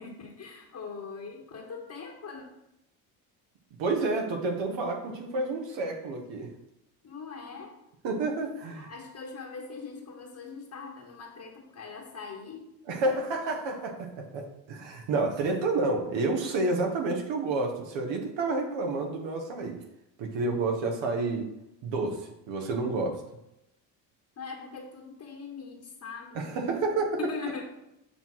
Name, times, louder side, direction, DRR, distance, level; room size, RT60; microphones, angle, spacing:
voice 1, 0.0-2.4 7.0-7.8 8.8-12.7 24.4-26.4 27.2-27.6, left 5 dB, 40° left, -2 dB, 1.2 m, -41 dB
voice 2, 3.8-6.5 8.0-8.9 12.9-19.8 20.2-21.5 21.8-23.2 26.3-27.2, right 3 dB, 70° right, 3 dB, 1.4 m, -29 dB
7.0 x 3.1 x 5.7 m, 0.88 s
supercardioid pair, 75°, 46 cm